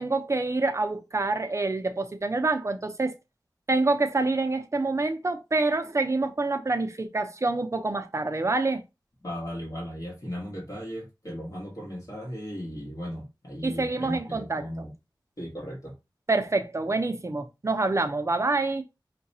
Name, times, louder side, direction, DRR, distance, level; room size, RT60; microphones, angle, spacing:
voice 1, 0.0-3.2 3.7-8.8 13.6-14.6 16.3-18.8, right 3 dB, 40° right, 0.5 m, -26 dB
voice 2, 9.2-14.9 15.4-15.9, equal, 50° left, 1.4 m, -36 dB
4.7 x 2.2 x 2.7 m
wide cardioid pair, 70°, 8 cm